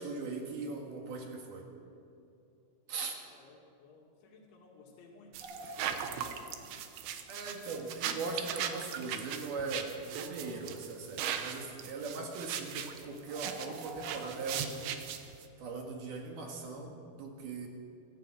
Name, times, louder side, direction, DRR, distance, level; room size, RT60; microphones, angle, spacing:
voice 1, 0.0-1.7 2.9-3.2 7.3-15.3 15.6-17.7, right 3 dB, 60° right, 1 dB, 3.6 m, -40 dB
voice 2, 3.3-6.8, left 3 dB, 85° left, -1 dB, 4.7 m, -57 dB
sound 1, 5.3-15.5, right 9 dB, 85° right, 3.6 m, -39 dB
sound 2, 5.4-7.1 7.4-7.5 8.0-8.1 8.8-8.9 10.0-11.0 11.3-11.6 12.0-12.1 12.5-12.6 12.7-12.8 13.2-16.3 16.6-16.9, right 1 dB, 35° right, 2.0 m, -50 dB
25.0 x 15.0 x 7.6 m, 2.6 s
omnidirectional pair, 5.2 m